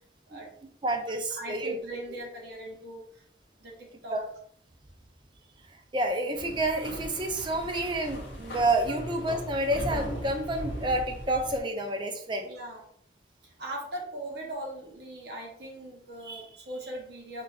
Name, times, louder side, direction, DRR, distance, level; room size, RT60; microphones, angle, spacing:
voice 1, 0.8-1.8 4.1-4.2 5.9-12.5 16.2-16.4, right 1 dB, 25° right, 4 dB, 0.5 m, -29 dB
voice 2, 1.4-3.2 3.6-4.2 12.4-12.8 13.4-17.4, right 1 dB, 60° right, -1 dB, 0.8 m, -40 dB
sound 1, 6.3-11.6, equal, 70° left, 1.3 m, -38 dB
5.0 x 2.4 x 2.4 m, 0.65 s
head